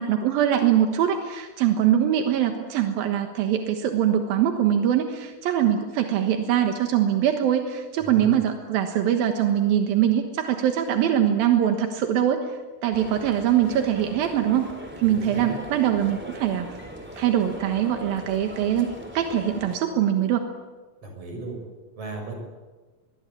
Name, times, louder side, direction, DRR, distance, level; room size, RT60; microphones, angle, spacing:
voice 1, 0.0-12.4 12.8-14.7 15.0-16.7 17.2-20.4, right 10 dB, 85° right, 5 dB, 3.2 m, -23 dB
voice 2, 8.0-8.3 15.0-15.6 21.0-21.6 22.0-22.3, right 3 dB, 40° right, 3 dB, 7.2 m, -36 dB
sound 1, 12.9-19.8, equal, 5° right, 3.2 m, -40 dB
24.0 x 22.5 x 8.5 m, 1.3 s
omnidirectional pair, 4.1 m